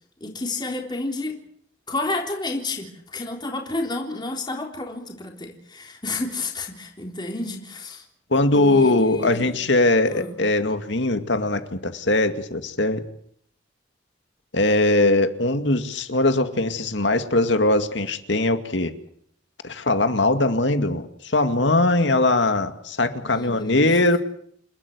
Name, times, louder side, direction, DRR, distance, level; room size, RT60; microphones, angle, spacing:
voice 1, 0.2-1.4 1.9-8.0 8.5-9.6 10.1-10.3 23.2-24.0, left 2 dB, 25° left, 1 dB, 3.6 m, -30 dB
voice 2, 8.3-13.0 14.5-18.9 19.6-24.2, left 2 dB, 70° left, 8 dB, 2.3 m, -21 dB
29.5 x 13.0 x 9.6 m, 0.66 s
head